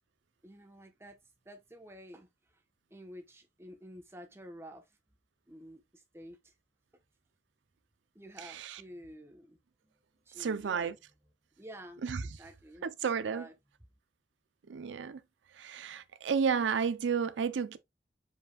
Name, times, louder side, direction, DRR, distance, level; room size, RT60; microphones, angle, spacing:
voice 1, 0.4-1.2 1.4-2.3 2.9-5.0 5.5-6.5 8.1-9.6 9.8-9.9 10.3-10.9 11.6-12.0 12.4-13.5, equal, 15° right, 0.9 m, -50 dB
voice 2, 8.4-8.8 10.4-11.0 12.0-12.3 12.8-13.5 14.7-15.2 15.5-17.8, right 6 dB, 85° right, 0.4 m, -32 dB
4.9 x 4.8 x 2.2 m
head